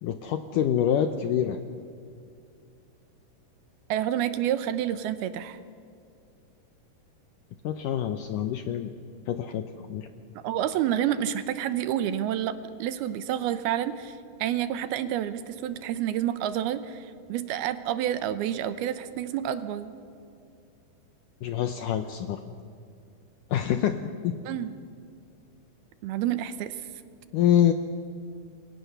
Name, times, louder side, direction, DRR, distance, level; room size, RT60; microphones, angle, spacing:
voice 1, 0.0-1.6 7.6-8.9 9.3-10.1 21.4-22.4 23.5-24.0 24.2-24.4 27.3-27.7, left 10 dB, 80° left, 8 dB, 1.9 m, -26 dB
voice 2, 3.9-5.6 10.4-19.9 24.5-24.8 26.0-26.8, right 11 dB, 75° right, 12 dB, 2.7 m, -29 dB
28.5 x 22.5 x 6.8 m, 2.5 s
omnidirectional pair, 4.7 m